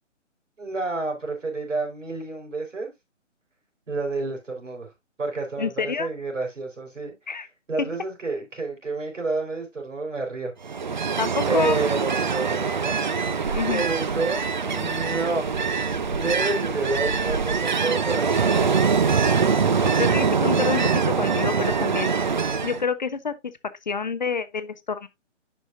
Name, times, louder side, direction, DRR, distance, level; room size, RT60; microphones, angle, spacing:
voice 1, 0.6-2.9 3.9-4.9 5.2-7.1 7.7-10.5 11.5-13.1 13.4-15.5 16.1-18.8, right 3 dB, 80° right, 4.4 m, -29 dB
voice 2, 5.6-6.1 7.3-7.5 7.8-8.0 11.2-11.8 13.5-13.8 20.0-22.1 22.6-23.3 23.9-25.1, left 5 dB, 35° left, 0.6 m, -27 dB
Ocean, 10.6-22.8, right 5 dB, 40° right, 0.4 m, -23 dB
10.5 x 5.3 x 2.5 m
figure-of-eight pair, 150°, 37 cm